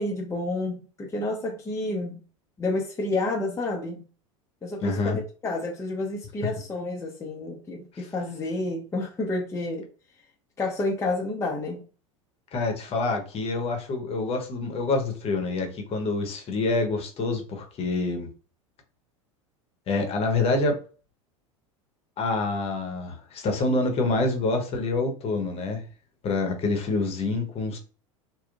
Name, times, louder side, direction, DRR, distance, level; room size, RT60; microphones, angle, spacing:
voice 1, 0.0-2.2 2.6-4.0 4.6-9.9 10.6-11.8, left 2 dB, 15° left, -1 dB, 0.7 m, -30 dB
voice 2, 4.8-5.2 12.5-18.3 19.9-20.8 22.2-25.8 26.2-27.8, left 3 dB, 35° left, 4 dB, 1.0 m, -26 dB
3.5 x 2.2 x 2.4 m, 0.37 s
hypercardioid pair, 80°, 17 cm